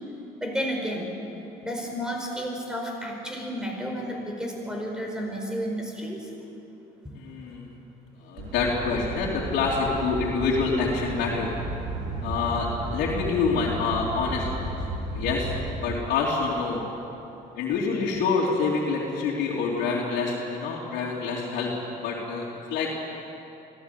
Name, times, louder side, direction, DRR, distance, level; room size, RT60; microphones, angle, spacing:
voice 1, 0.4-1.1 1.6-6.3, equal, 5° right, 0 dB, 5.1 m, -31 dB
voice 2, 7.1-7.7 8.2-11.5 12.2-14.8 15.1-15.5 15.8-16.8 17.6-21.7 22.0-22.9, left 4 dB, 85° left, -6 dB, 3.2 m, -27 dB
sound 1, 8.4-15.7, right 2 dB, 80° right, 5.0 m, -34 dB
23.5 x 16.5 x 8.4 m, 3.0 s
cardioid pair, 110°, 17 cm